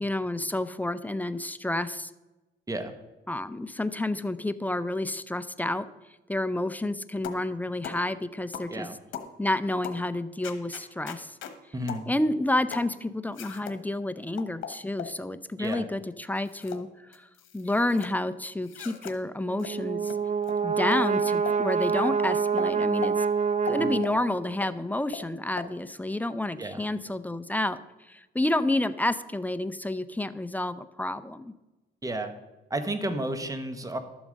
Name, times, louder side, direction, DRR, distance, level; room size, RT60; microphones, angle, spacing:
voice 1, 0.0-2.1 3.3-5.9 6.3-8.9 9.4-11.4 12.1-17.3 17.5-20.2 20.6-23.3 23.6-27.8 28.1-31.5, left 1 dB, 10° left, 13 dB, 0.5 m, -29 dB
sound 1, 7.2-7.5 7.8-8.0 8.5-8.7 9.1-9.3 9.8-10.0 10.4-11.6 11.9-12.1 12.7-12.9 13.3-13.8 14.4-15.2 15.6-15.9 16.4-16.8 17.1-18.1 18.6-19.2 19.6-19.7 20.0-20.2 20.4-20.6 20.9-21.0 21.5-21.6 22.0-22.2 22.6-22.7 23.0-23.1 23.7-24.2 24.6-24.7 25.1-25.2 25.6-25.7, left 9 dB, 75° left, 1.2 m, -39 dB
voice 2, 11.7-12.0 15.6-15.9 23.8-24.0 26.6-26.8 32.0-32.3 32.7-34.0, right 1 dB, 15° right, 8 dB, 1.2 m, -32 dB
Brass instrument, 19.5-24.5, right 6 dB, 40° right, 0.7 m, -27 dB
12.0 x 7.1 x 5.2 m, 1.1 s
cardioid pair, 90°, 20 cm